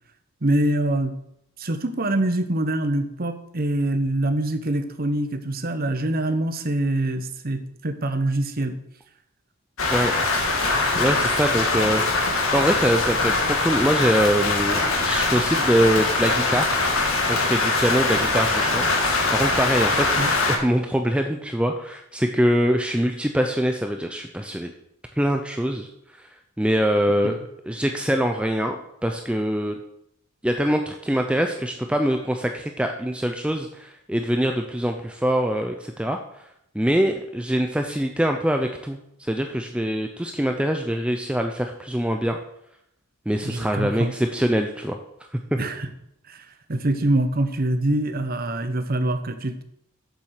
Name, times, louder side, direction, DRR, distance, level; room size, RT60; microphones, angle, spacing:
voice 1, 0.4-1.1 1.6-8.7 20.2-20.3 27.2-27.3 43.4-44.1 45.6-45.9 46.3-49.6, right 1 dB, 45° right, 8 dB, 0.9 m, -24 dB
Rain, 9.8-20.6, left 3 dB, 75° left, 1.8 m, -22 dB
voice 2, 11.0-16.8 17.3-18.9 19.3-24.7 25.2-25.9 26.2-26.3 26.6-27.3 27.6-29.8 30.4-36.4 36.7-42.4 43.3-45.0 45.5-45.6, equal, 5° right, 4 dB, 0.5 m, -24 dB
7.4 x 7.3 x 6.5 m, 0.78 s
head